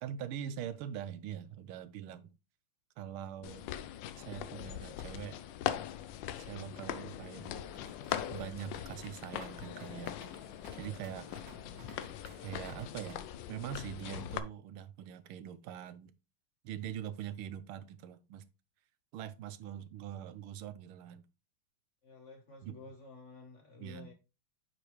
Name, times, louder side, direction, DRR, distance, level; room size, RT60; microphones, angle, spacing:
voice 1, 0.0-2.3 3.0-3.7 4.2-5.4 6.4-7.7 8.3-10.1 10.8-11.3 12.4-16.1 16.6-18.4 19.1-21.2 22.6-22.8 23.8-24.1, right 10 dB, 85° right, 1.5 m, -43 dB
sound 1, 3.4-14.4, left 11 dB, 75° left, 1.2 m, -41 dB
sound 2, 7.7-13.1, right 2 dB, 50° right, 2.0 m, -56 dB
voice 2, 11.2-11.9 22.0-24.1, left 3 dB, 45° left, 1.1 m, -53 dB
8.4 x 5.1 x 3.1 m
omnidirectional pair, 2.3 m